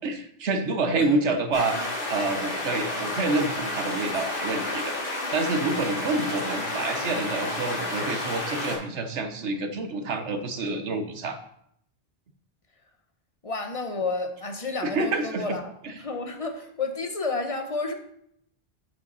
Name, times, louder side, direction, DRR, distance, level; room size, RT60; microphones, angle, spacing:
voice 1, 0.0-1.8 2.1-4.9 5.3-11.4 14.8-15.4 15.8-15.9, right 3 dB, 85° right, 7 dB, 1.3 m, -28 dB
sound 1, 1.5-8.7, left 2 dB, 90° left, 3.8 m, -31 dB
voice 2, 13.4-17.9, left 3 dB, 30° left, 5 dB, 1.1 m, -31 dB
8.1 x 7.4 x 4.1 m, 0.69 s
omnidirectional pair, 1.1 m